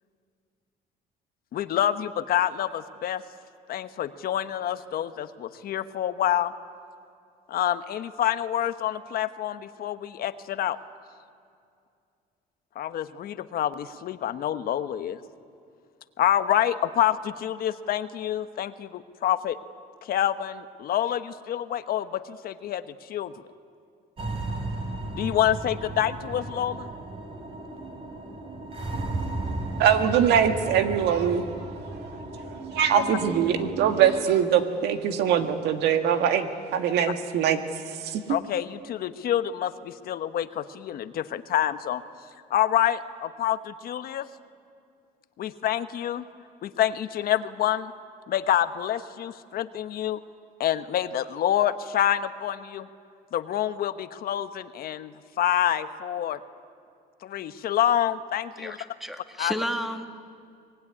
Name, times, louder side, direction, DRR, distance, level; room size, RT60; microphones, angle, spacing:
voice 1, 1.5-3.2 3.7-6.5 7.5-10.8 12.7-15.2 16.2-19.6 20.0-23.3 25.1-26.9 33.0-33.2 38.3-42.0 42.5-44.3 45.4-46.2 46.6-47.9 48.3-50.2 50.6-52.9 53.3-56.4 57.2-58.8 59.4-59.5, left 11 dB, 60° left, 11 dB, 1.1 m, -27 dB
sound 1, 24.2-34.2, right 2 dB, 35° right, 3.3 m, -35 dB
voice 2, 29.8-31.5 32.7-37.6 38.0-38.2, right 8 dB, 80° right, 7 dB, 1.8 m, -22 dB
voice 3, 58.6-60.1, equal, ahead, 6 dB, 1.9 m, -32 dB
24.5 x 20.5 x 9.9 m, 2.3 s
cardioid pair, 110°, 17 cm